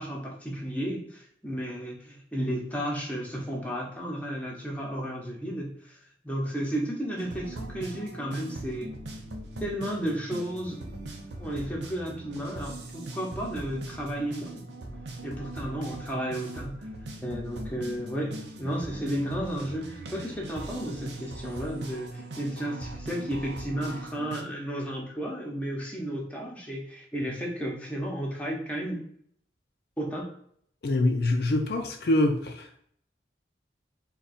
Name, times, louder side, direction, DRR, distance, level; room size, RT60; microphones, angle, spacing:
voice 1, 0.0-6.0 6.2-8.9 9.6-10.9 11.4-14.6 15.2-16.9 17.2-29.0 30.0-30.3, equal, 10° left, -2 dB, 0.8 m, -33 dB
sound 1, 7.2-24.4, right 2 dB, 85° right, 0.6 m, -40 dB
voice 2, 30.8-32.7, left 1 dB, 60° left, 4 dB, 0.4 m, -25 dB
3.7 x 2.3 x 4.1 m, 0.65 s
head